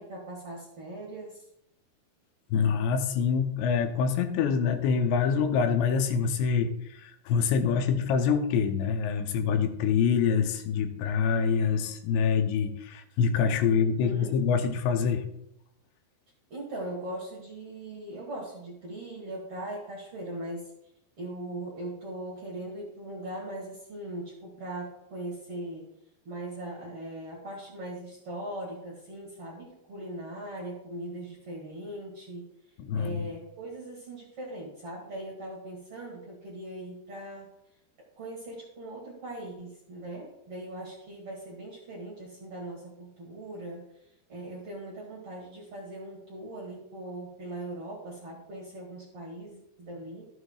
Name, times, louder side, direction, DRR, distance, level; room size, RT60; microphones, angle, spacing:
voice 1, 0.0-1.4 13.7-14.4 16.5-20.7 21.2-25.9 26.2-32.5 32.9-37.6 38.2-43.9 44.3-50.3, right 1 dB, 50° right, -4 dB, 1.7 m, -40 dB
voice 2, 2.5-15.2 32.8-33.3, left 6 dB, 90° left, 7 dB, 3.0 m, -26 dB
13.0 x 7.9 x 2.3 m, 0.79 s
omnidirectional pair, 4.9 m